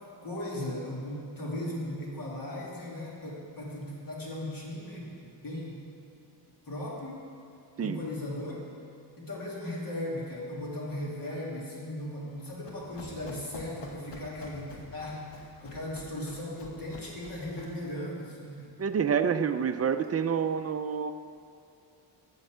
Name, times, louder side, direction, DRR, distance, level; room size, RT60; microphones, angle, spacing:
voice 1, 0.2-5.8 6.7-7.2 7.8-8.6 9.2-18.7, left 1 dB, 50° left, -4 dB, 2.7 m, -37 dB
Run, 12.3-17.9, left 2 dB, 80° left, 1.4 m, -48 dB
voice 2, 18.8-21.1, right 7 dB, 35° right, 10 dB, 0.4 m, -28 dB
9.8 x 7.4 x 6.7 m, 2.4 s
wide cardioid pair, 140°, 42 cm